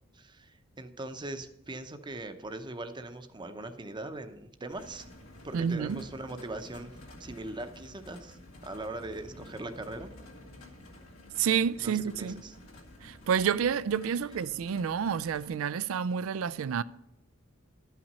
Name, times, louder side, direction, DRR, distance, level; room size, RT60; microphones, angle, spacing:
voice 1, 0.1-5.1 5.4-6.9 7.2-10.1 11.8-12.6, right 2 dB, 20° right, 0.7 m, -40 dB
sound 1, 4.7-15.5, left 1 dB, 80° left, 2.1 m, -51 dB
voice 2, 5.5-6.0 11.4-12.4 13.0-16.8, right 7 dB, 75° right, 0.4 m, -29 dB
11.5 x 5.8 x 5.4 m
head